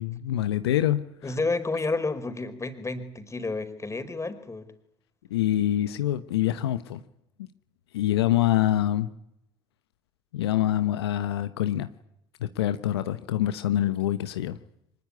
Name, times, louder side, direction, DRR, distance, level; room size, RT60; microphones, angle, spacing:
voice 1, 0.0-1.3 5.3-7.0 7.9-9.1 10.3-11.9 12.4-14.6, left 12 dB, 85° left, 1.0 m, -25 dB
voice 2, 1.2-4.7, left 3 dB, 20° left, 4.6 m, -30 dB
25.0 x 20.5 x 9.8 m
hypercardioid pair, 55°, 13 cm